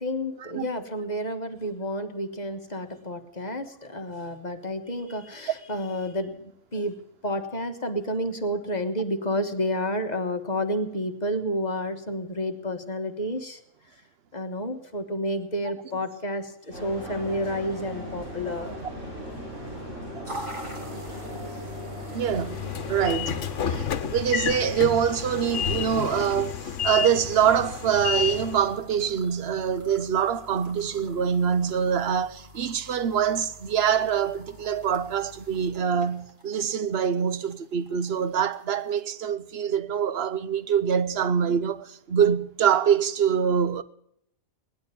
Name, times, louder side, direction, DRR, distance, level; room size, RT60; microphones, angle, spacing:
voice 1, 0.0-7.0 7.2-13.6 14.3-18.7, equal, 35° left, 1.4 m, -30 dB
sound 1, 16.7-23.5, equal, 90° right, 8.2 m, -38 dB
sound 2, 20.2-39.0, equal, 40° right, 2.8 m, -46 dB
voice 2, 22.1-22.6 22.9-43.8, right 8 dB, 60° right, 1.0 m, -25 dB
Train / Sliding door, 22.2-28.7, left 8 dB, 75° left, 1.3 m, -30 dB
18.5 x 11.5 x 6.9 m
omnidirectional pair, 1.3 m